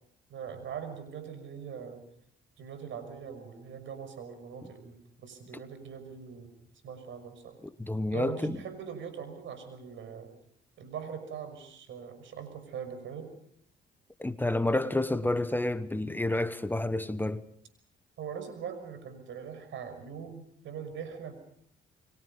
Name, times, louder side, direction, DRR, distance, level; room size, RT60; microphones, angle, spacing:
voice 1, 0.3-2.0 2.6-5.0 5.2-6.5 6.8-7.6 8.1-10.3 10.8-13.3 18.2-21.3, right 7 dB, 75° right, 5.8 m, -41 dB
voice 2, 7.8-8.6 14.2-17.4, left 2 dB, 10° left, 1.1 m, -29 dB
29.5 x 22.5 x 5.5 m
cardioid pair, 90°, 20 cm